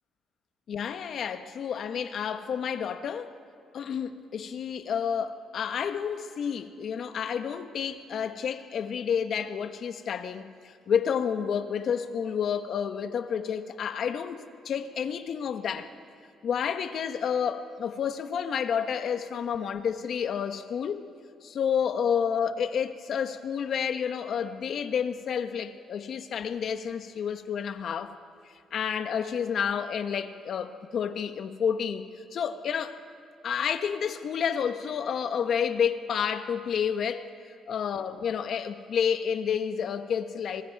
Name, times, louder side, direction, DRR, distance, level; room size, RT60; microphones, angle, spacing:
voice 1, 0.7-3.3 3.7-15.9 16.4-21.0 21.4-28.1 28.7-33.0 33.4-37.3 37.7-40.6, left 7 dB, 65° left, 1.2 m, -30 dB
26.0 x 21.0 x 4.7 m
cardioid pair, 90°, 0 cm